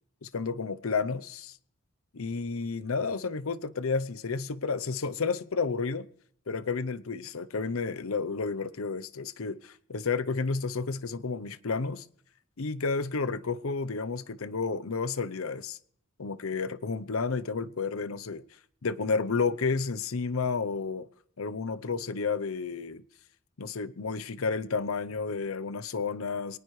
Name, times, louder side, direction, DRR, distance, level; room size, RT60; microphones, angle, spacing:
voice 1, 0.2-1.5 2.1-6.1 6.5-12.1 12.6-15.8 16.2-18.4 18.8-21.1 21.4-23.0 23.6-26.6, left 4 dB, 85° left, 0.7 m, -31 dB
21.5 x 19.0 x 3.2 m
head